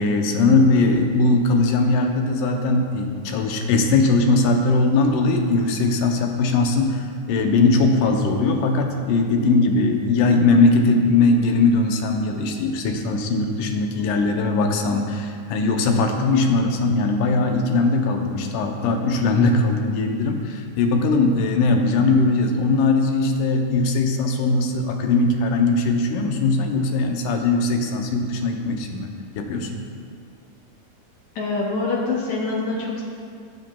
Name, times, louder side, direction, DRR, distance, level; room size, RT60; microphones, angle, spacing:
voice 1, 0.0-29.1 29.4-29.8, left 3 dB, 85° left, 3 dB, 2.4 m, -20 dB
voice 2, 31.4-33.0, left 3 dB, 70° left, -3 dB, 2.2 m, -25 dB
15.0 x 7.9 x 2.3 m, 2.2 s
omnidirectional pair, 3.6 m